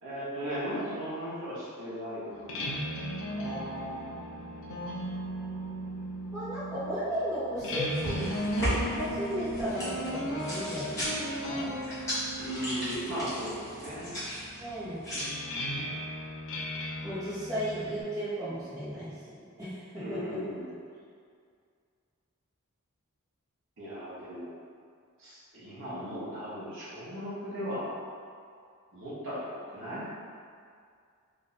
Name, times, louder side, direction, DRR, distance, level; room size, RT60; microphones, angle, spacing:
voice 1, 0.0-3.0 12.4-14.2 19.9-20.7 23.8-24.5 25.2-28.0 28.9-30.1, equal, 60° right, -10 dB, 1.3 m, -37 dB
sound 1, 2.3-18.0, equal, 65° left, 0.5 m, -37 dB
voice 2, 3.4-4.1 6.3-8.3 8.6-11.8 14.6-15.0 17.0-19.8 20.1-20.4, equal, 15° right, -13 dB, 1.2 m, -35 dB
sound 2, 7.6-15.3, equal, 15° left, 1.4 m, -36 dB
3.5 x 2.8 x 4.2 m, 2.2 s
head